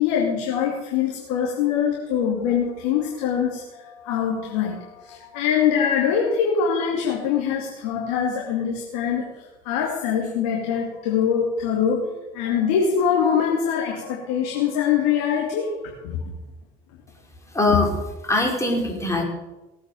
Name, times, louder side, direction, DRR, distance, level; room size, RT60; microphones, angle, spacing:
voice 1, 0.0-16.2, left 7 dB, 85° left, 0 dB, 2.7 m, -23 dB
voice 2, 17.5-17.9 18.2-19.2, left 2 dB, 15° left, 1 dB, 5.3 m, -21 dB
19.0 x 8.6 x 7.0 m, 1.1 s
supercardioid pair, 90°, 19 cm